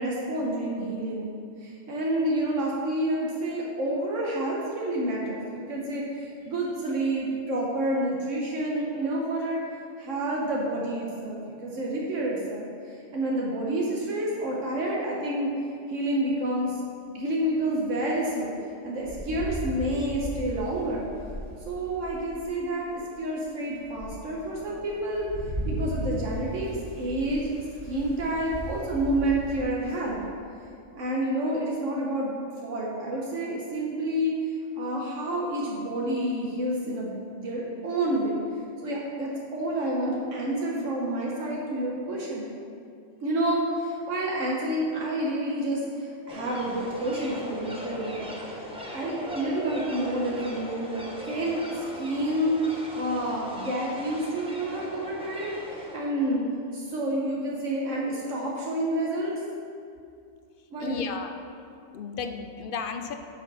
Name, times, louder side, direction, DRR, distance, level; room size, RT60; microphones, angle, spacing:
voice 1, 0.0-1.3 1.6-9.6 10.0-15.5 15.9-16.8 17.1-18.5 18.8-21.1 21.7-25.3 25.7-27.5 27.9-30.2 30.9-38.4 38.8-42.5 43.2-48.6 48.9-56.5 56.7-59.4 60.7-61.1, right 1 dB, 80° right, -3 dB, 1.4 m, -29 dB
Rain, 19.0-22.6 23.1-23.2 23.7-30.3, equal, 30° right, 2.2 m, -37 dB
sound 1, 46.3-56.0, equal, 5° right, 1.0 m, -39 dB
voice 2, 60.8-61.4 61.9-63.1, left 5 dB, 55° left, 7 dB, 0.7 m, -34 dB
10.0 x 6.0 x 4.2 m, 2.4 s
omnidirectional pair, 1.3 m